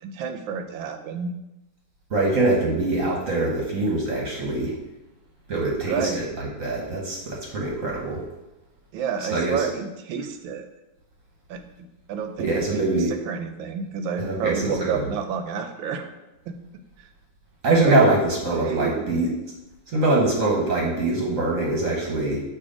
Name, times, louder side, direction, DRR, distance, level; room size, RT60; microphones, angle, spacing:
voice 1, 0.0-1.3 5.8-6.3 8.9-10.7 11.5-11.6 12.1-16.1 16.5-16.6 17.0-17.1 17.8-18.1 18.5-19.1, right 6 dB, 80° right, 7 dB, 1.4 m, -30 dB
voice 2, 2.1-4.7 5.5-8.2 9.3-9.6 12.4-13.1 14.2-15.0 17.6-19.3 19.9-22.4, right 2 dB, 50° right, -2 dB, 1.1 m, -23 dB
6.9 x 2.9 x 4.9 m, 0.96 s
omnidirectional pair, 2.2 m